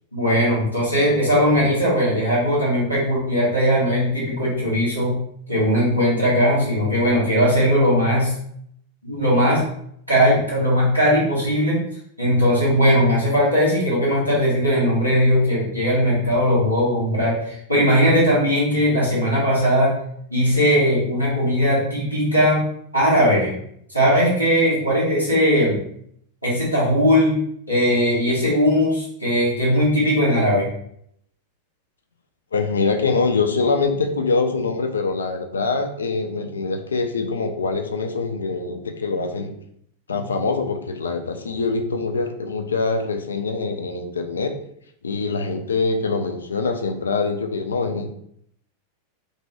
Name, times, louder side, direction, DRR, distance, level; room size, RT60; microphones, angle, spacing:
voice 1, 0.1-5.2 5.5-8.3 9.0-9.6 10.1-11.8 12.2-19.9 20.3-22.6 22.9-23.5 23.9-25.8 26.4-27.4 27.7-30.7, equal, 90° right, -8 dB, 1.1 m, -19 dB
voice 2, 32.5-39.5 40.1-44.5 45.0-48.1, left 4 dB, 70° left, 6 dB, 0.3 m, -24 dB
2.6 x 2.1 x 2.8 m, 0.70 s
figure-of-eight pair, 90°, 0 cm